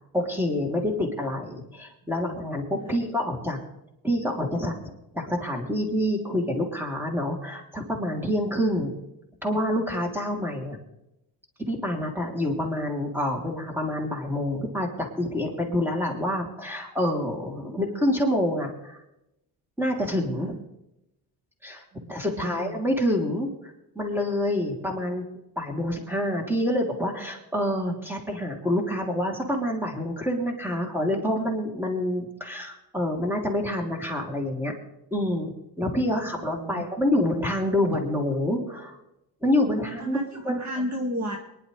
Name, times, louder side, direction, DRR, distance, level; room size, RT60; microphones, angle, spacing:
voice 1, 0.1-3.6 4.0-4.7 5.1-8.9 9.4-10.8 11.7-19.0 19.8-20.6 21.6-21.8 22.1-23.5 23.9-25.2 25.6-34.7 35.1-35.5 35.8-39.0 39.4-40.6, left 1 dB, 5° right, 1 dB, 3.0 m, -27 dB
voice 2, 21.9-22.8 30.7-30.9 36.0-36.8 37.1-37.2 39.8-41.4, equal, 40° right, 2 dB, 2.0 m, -34 dB
23.5 x 11.0 x 3.3 m, 0.88 s
cardioid pair, 100°, 42 cm